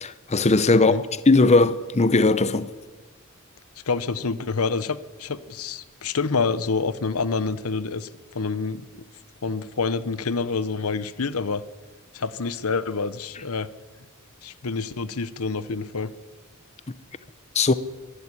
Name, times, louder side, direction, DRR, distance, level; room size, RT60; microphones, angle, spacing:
voice 1, 0.0-2.7 17.5-17.7, left 3 dB, 30° left, 0.7 m, -19 dB
voice 2, 0.7-1.0 3.9-9.0 9.4-11.6 12.1-13.7 14.4-16.1, left 4 dB, 75° left, 0.9 m, -27 dB
23.5 x 12.0 x 9.9 m
head